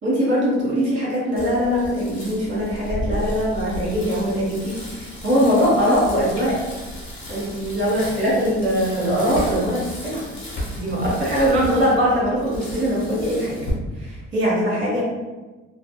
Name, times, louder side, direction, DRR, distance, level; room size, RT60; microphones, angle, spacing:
voice 1, 0.0-6.6 7.3-10.3 10.7-13.6 14.0-15.0, equal, 35° right, -5 dB, 1.4 m, -21 dB
Bicycle, 1.4-13.7, left 1 dB, 40° left, 1.0 m, -34 dB
2.7 x 2.2 x 2.3 m, 1.2 s
cardioid pair, 90°, 30 cm